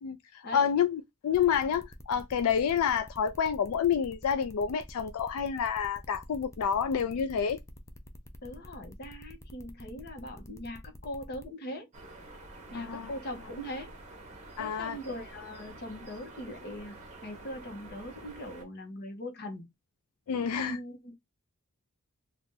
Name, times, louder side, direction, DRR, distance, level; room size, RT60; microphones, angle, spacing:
voice 1, 0.0-7.6 12.7-13.1 14.6-15.0 20.3-20.8, left 7 dB, 80° left, 0.3 m, -29 dB
sound 1, 1.3-11.5, left 1 dB, 15° left, 0.4 m, -50 dB
voice 2, 8.4-11.9 12.7-13.9 14.6-19.6 20.3-21.1, left 1 dB, 50° left, 1.0 m, -41 dB
sound 2, 11.9-18.6, right 2 dB, 35° right, 1.0 m, -48 dB
2.7 x 2.4 x 3.7 m
head